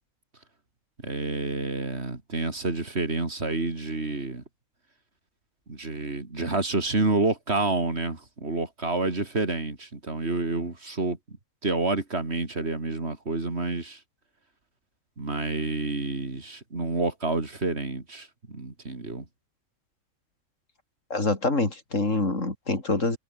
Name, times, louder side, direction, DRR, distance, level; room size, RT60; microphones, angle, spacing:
voice 1, 1.0-4.4 5.7-11.2 11.6-14.0 15.2-19.2, right 3 dB, 50° right, 3.9 m, -29 dB
voice 2, 21.1-23.2, left 2 dB, 65° left, 4.9 m, -26 dB
omnidirectional pair, 1.4 m